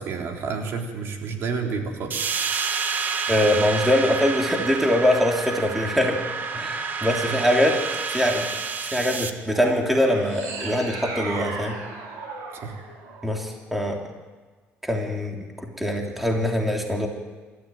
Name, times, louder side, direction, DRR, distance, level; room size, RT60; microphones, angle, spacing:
voice 1, 0.0-2.1 7.2-7.4 12.5-12.8, right 5 dB, 60° right, 2 dB, 3.8 m, -30 dB
sound 1, 2.1-9.3, right 5 dB, 40° right, 1.6 m, -29 dB
voice 2, 3.3-6.2 6.5-7.8 8.1-8.5 8.9-11.8 13.2-14.0 14.8-17.1, left 1 dB, 5° right, 1 dB, 3.1 m, -23 dB
sound 2, 9.4-13.8, right 3 dB, 90° right, 5.3 m, -35 dB
27.0 x 13.5 x 9.3 m, 1.4 s
cardioid pair, 135°, 5 cm